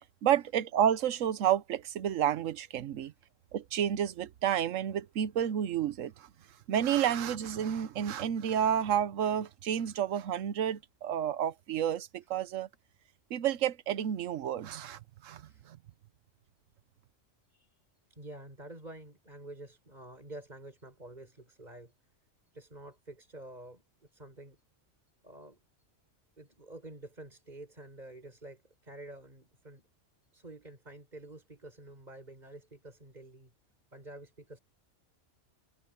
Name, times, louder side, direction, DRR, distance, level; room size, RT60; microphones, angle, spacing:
voice 1, 0.2-3.1 3.5-6.3 6.7-12.7 13.3-15.8, right 9 dB, 85° right, 1.1 m, -30 dB
voice 2, 18.1-21.9 22.5-24.6 25.2-25.6 26.4-29.9 30.3-33.5 33.9-34.6, right 1 dB, 35° right, 5.9 m, -49 dB
omnidirectional pair, 1.3 m